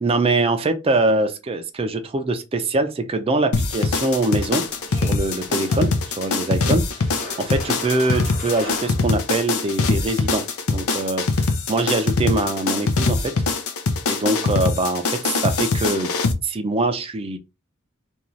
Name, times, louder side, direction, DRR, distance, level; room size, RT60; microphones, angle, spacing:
voice 1, 0.0-4.6 4.9-7.0 7.4-13.3 14.1-16.1 16.4-17.4, right 2 dB, 25° right, 0.4 m, -23 dB
sound 1, 3.5-16.3, left 3 dB, 90° left, 0.5 m, -23 dB
sound 2, 3.8-9.5, left 1 dB, 35° left, 0.8 m, -38 dB
2.6 x 2.3 x 3.0 m
head